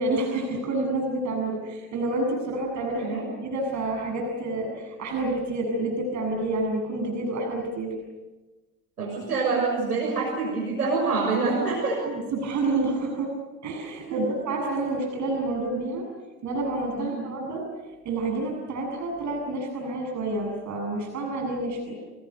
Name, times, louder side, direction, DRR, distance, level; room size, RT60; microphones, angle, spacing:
voice 1, 0.0-3.2 3.4-7.9 12.1-13.3 13.6-16.1 16.4-17.7 18.0-22.0, right 2 dB, 40° right, 1 dB, 7.6 m, -28 dB
voice 2, 9.0-12.0 14.1-14.2 17.0-17.2, right 4 dB, 80° right, 0 dB, 6.5 m, -26 dB
30.0 x 26.5 x 6.8 m, 1.2 s
figure-of-eight pair, 70°, 45 cm